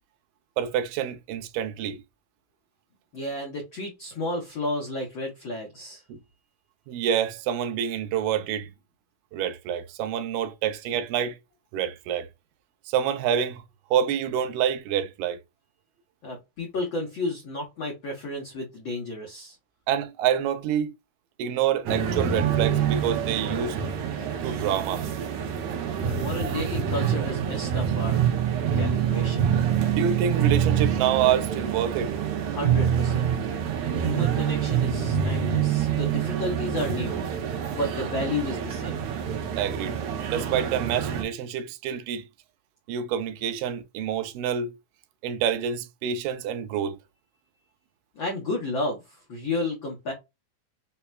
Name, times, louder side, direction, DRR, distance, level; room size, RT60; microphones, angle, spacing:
voice 1, 0.6-2.0 6.1-6.2 6.9-8.7 9.3-11.4 11.7-12.3 12.9-13.6 13.9-15.4 19.9-20.9 21.4-23.8 24.4-25.1 29.8-32.1 39.6-40.0 40.3-42.2 42.9-44.7 45.2-47.0, right 9 dB, 85° right, 2.3 m, -27 dB
voice 2, 3.1-6.0 16.2-19.6 26.0-28.2 28.7-29.5 32.5-33.3 33.9-37.2 37.7-39.0 48.1-50.1, left 2 dB, 75° left, 1.1 m, -32 dB
sound 1, 21.9-41.2, right 8 dB, 70° right, 1.9 m, -26 dB
5.6 x 2.2 x 2.2 m
omnidirectional pair, 3.8 m